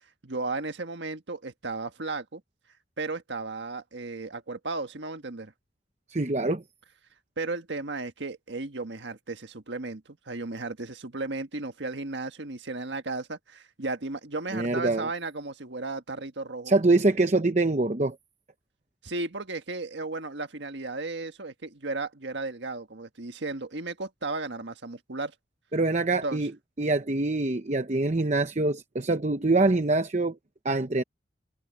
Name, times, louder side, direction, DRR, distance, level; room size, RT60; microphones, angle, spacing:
voice 1, 0.2-2.4 3.0-5.5 7.4-16.7 19.0-25.3 26.2-26.5, right 3 dB, 75° right, 1.6 m, -34 dB
voice 2, 6.1-6.6 14.5-15.1 16.7-18.2 25.7-26.5 26.8-30.4 30.6-31.0, right 2 dB, 40° right, 0.9 m, -24 dB
head